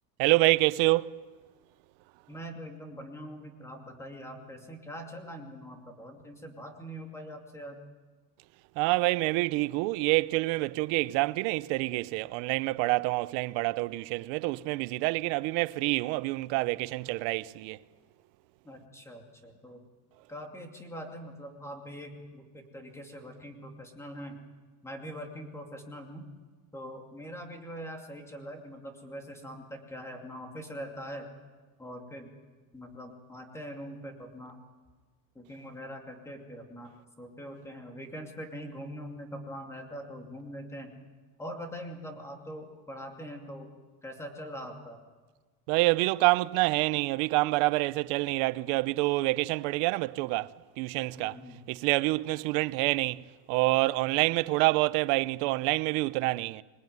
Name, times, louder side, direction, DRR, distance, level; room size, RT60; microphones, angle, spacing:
voice 1, 0.2-1.2 8.8-17.8 45.7-51.4 51.7-56.6, right 21 dB, 65° right, 0.8 m, -27 dB
voice 2, 2.3-7.8 18.6-19.8 20.3-24.4 24.8-26.3 26.7-31.3 31.8-32.3 32.7-34.6 35.3-36.9 37.2-40.9 41.4-43.7 44.0-45.0 51.2-51.6, equal, 5° left, 2.6 m, -43 dB
26.0 x 19.5 x 9.4 m
cardioid pair, 175°, 41 cm